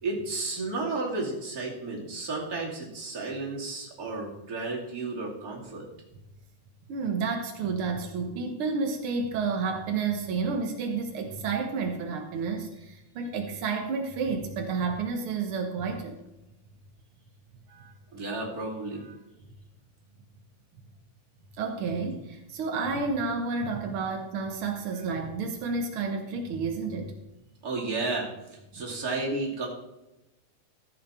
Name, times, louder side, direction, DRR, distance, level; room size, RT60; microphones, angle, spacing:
voice 1, 0.0-5.8 17.7-19.1 27.6-29.7, right 3 dB, 25° right, -3 dB, 2.7 m, -33 dB
voice 2, 6.9-16.2 21.6-27.1, right 4 dB, 85° right, 4 dB, 1.1 m, -30 dB
14.0 x 7.5 x 4.3 m, 0.96 s
omnidirectional pair, 4.1 m